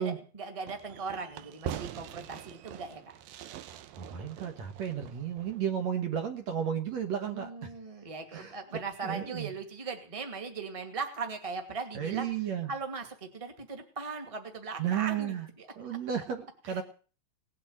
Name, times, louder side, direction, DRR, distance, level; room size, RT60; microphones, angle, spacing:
voice 1, 0.0-3.2 7.2-12.3 12.7-16.0 16.7-16.8, right 4 dB, 10° right, 5 dB, 1.9 m, -39 dB
Fireworks, 0.7-5.9, right 9 dB, 85° right, 2.7 m, -43 dB
voice 2, 4.0-7.5 8.3-8.5 9.0-9.5 12.0-12.7 14.8-15.5 15.8-16.8, right 9 dB, 55° right, 5 dB, 2.5 m, -33 dB
19.0 x 8.6 x 8.9 m, 0.40 s
omnidirectional pair, 4.0 m